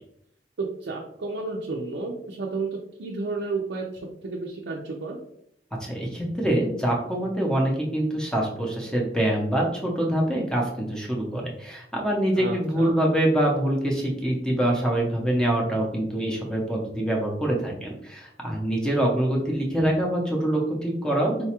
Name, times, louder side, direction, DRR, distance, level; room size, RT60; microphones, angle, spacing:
voice 1, 0.6-2.7 3.0-3.9 4.2-5.2 12.3-12.9, right 3 dB, 75° right, -1 dB, 0.5 m, -31 dB
voice 2, 5.8-21.5, right 1 dB, 5° left, -2 dB, 0.6 m, -25 dB
4.0 x 2.3 x 2.9 m, 0.74 s
head